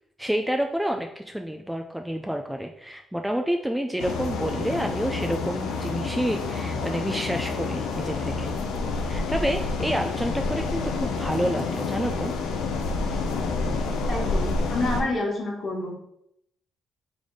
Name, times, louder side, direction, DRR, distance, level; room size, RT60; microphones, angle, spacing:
voice 1, 0.2-8.5 9.1-12.3, equal, 5° right, 4 dB, 0.3 m, -29 dB
sound 1, 4.0-15.0, left 3 dB, 85° left, 0.6 m, -28 dB
voice 2, 14.1-15.9, left 2 dB, 45° left, -1 dB, 1.4 m, -28 dB
3.6 x 3.3 x 4.0 m, 0.77 s
cardioid pair, 90°, 0 cm